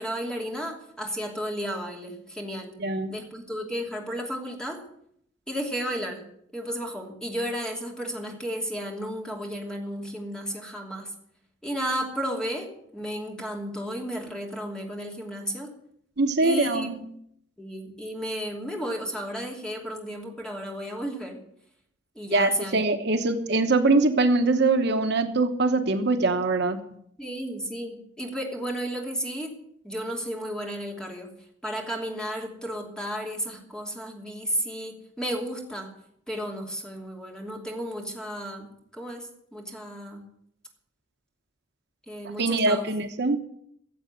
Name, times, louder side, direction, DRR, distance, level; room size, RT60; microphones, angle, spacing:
voice 1, 0.0-2.7 3.1-4.8 5.5-6.2 6.5-11.1 11.6-15.7 16.4-16.9 17.6-21.4 22.1-22.8 27.2-29.5 29.8-31.3 31.6-35.9 36.3-40.2 42.1-42.8, equal, 5° left, 0 dB, 2.8 m, -33 dB
voice 2, 2.8-3.1 16.2-17.0 22.3-26.8 42.2-43.4, right 3 dB, 65° right, 7 dB, 1.0 m, -23 dB
15.5 x 7.7 x 7.8 m, 0.71 s
head